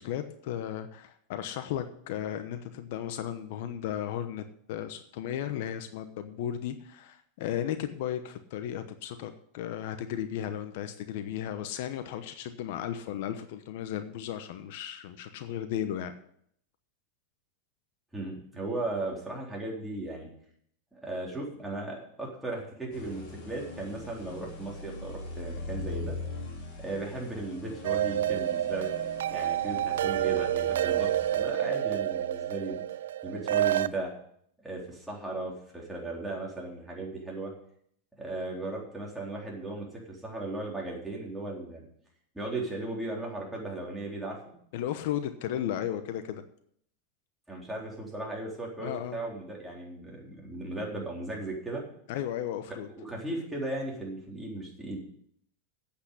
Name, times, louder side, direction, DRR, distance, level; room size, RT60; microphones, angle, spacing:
voice 1, 0.0-16.1 44.7-46.4 48.8-49.2 52.1-52.9, left 10 dB, 65° left, 9 dB, 1.0 m, -35 dB
voice 2, 18.1-20.3 20.9-26.2 26.8-28.9 29.3-32.8 33.2-34.1 34.6-37.5 38.2-41.9 42.3-44.4 47.5-51.8 53.0-55.0, right 2 dB, 5° right, -3 dB, 4.0 m, -36 dB
sound 1, 22.9-31.4, left 2 dB, 45° left, 5.7 m, -41 dB
sound 2, 27.8-33.9, right 12 dB, 90° right, 0.5 m, -28 dB
8.6 x 8.4 x 8.4 m, 0.68 s
supercardioid pair, 130°, 0 cm